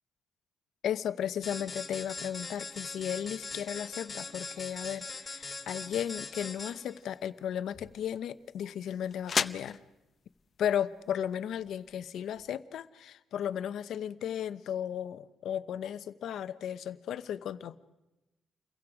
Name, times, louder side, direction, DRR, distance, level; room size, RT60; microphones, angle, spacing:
voice 1, 0.8-9.8 10.6-17.8, left 9 dB, 70° left, 0.9 m, -35 dB
sound 1, 1.4-7.0, left 4 dB, 25° left, 3.5 m, -41 dB
sound 2, 6.6-12.5, left 6 dB, 40° left, 0.7 m, -39 dB
29.5 x 22.5 x 5.0 m
cardioid pair, 120°, 0 cm